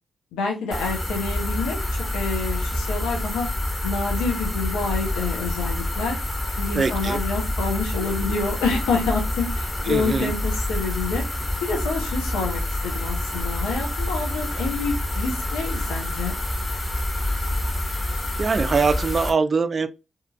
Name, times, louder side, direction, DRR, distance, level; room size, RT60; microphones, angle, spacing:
voice 1, 0.3-1.8 2.1-3.5 3.8-6.2 6.6-11.2 11.6-16.4, left 4 dB, 85° left, 0.5 m, -28 dB
sound 1, 0.7-19.3, left 1 dB, 30° left, 1.1 m, -27 dB
voice 2, 6.7-7.2 9.9-10.3 18.4-19.9, right 4 dB, 50° right, 0.3 m, -22 dB
2.8 x 2.4 x 2.3 m
hypercardioid pair, 45°, 0 cm